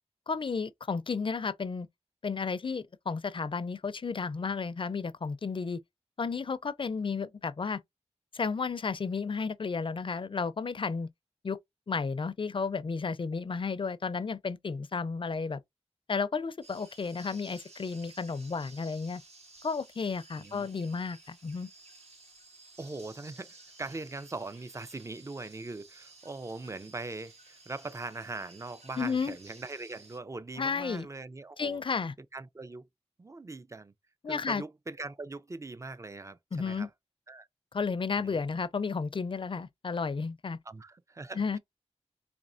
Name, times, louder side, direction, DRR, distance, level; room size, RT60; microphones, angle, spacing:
voice 1, 0.3-1.9 2.2-5.8 6.2-7.8 8.3-11.1 11.4-11.6 11.9-15.6 16.1-19.2 19.6-21.7 29.0-29.3 30.6-31.1 31.6-32.1 34.2-34.6 36.5-36.9 37.7-40.6 41.4-41.6, left 5 dB, 50° left, 0.4 m, -32 dB
sound 1, 16.6-30.2, right 3 dB, 70° right, 1.4 m, -55 dB
voice 2, 20.4-20.7 22.8-31.8 32.3-32.9 33.2-33.9 34.3-36.9 37.3-37.5 38.2-38.4 40.7-41.6, right 3 dB, 25° right, 0.4 m, -41 dB
4.2 x 3.0 x 2.5 m
wide cardioid pair, 70°, 11 cm